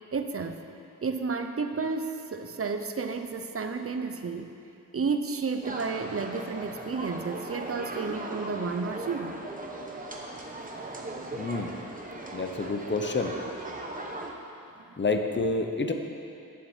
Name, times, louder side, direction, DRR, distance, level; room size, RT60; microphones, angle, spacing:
voice 1, 0.1-0.6 1.0-4.5 4.9-9.4 10.7-11.0, right 4 dB, 40° right, 7 dB, 0.7 m, -32 dB
sound 1, 5.6-14.3, right 2 dB, 25° right, 1.0 m, -38 dB
voice 2, 11.3-11.7 12.3-13.3 15.0-15.9, left 3 dB, 35° left, 5 dB, 0.8 m, -28 dB
9.5 x 7.6 x 7.3 m, 2.6 s
wide cardioid pair, 125°, 33 cm